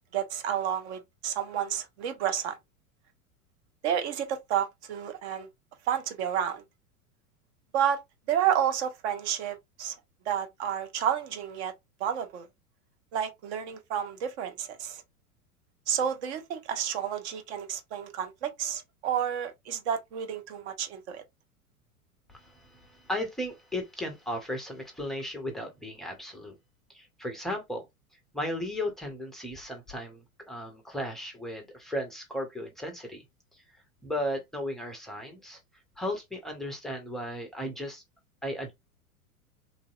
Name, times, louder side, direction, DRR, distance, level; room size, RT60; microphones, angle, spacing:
voice 1, 0.0-2.6 3.8-5.5 5.8-6.6 7.7-8.0 8.3-10.0 10.3-11.7 12.0-12.5 13.1-15.0 15.9-21.2, right 9 dB, 50° right, 0.8 m, -30 dB
voice 2, 22.3-26.6 26.9-27.9 28.3-33.2 33.5-33.6 34.0-35.6 36.0-38.0 38.4-38.8, left 1 dB, ahead, 0.4 m, -35 dB
3.1 x 2.6 x 2.3 m
figure-of-eight pair, 90°, 44 cm